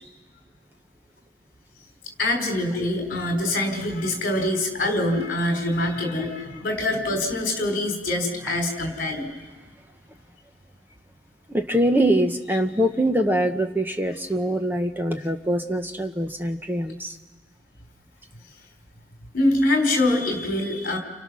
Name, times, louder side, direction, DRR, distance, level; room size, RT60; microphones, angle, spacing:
voice 1, 2.2-9.3 19.3-21.0, left 1 dB, 45° left, 2 dB, 4.1 m, -24 dB
voice 2, 11.5-17.2, right 1 dB, 10° right, 5 dB, 0.9 m, -23 dB
29.5 x 28.5 x 6.2 m, 1.3 s
head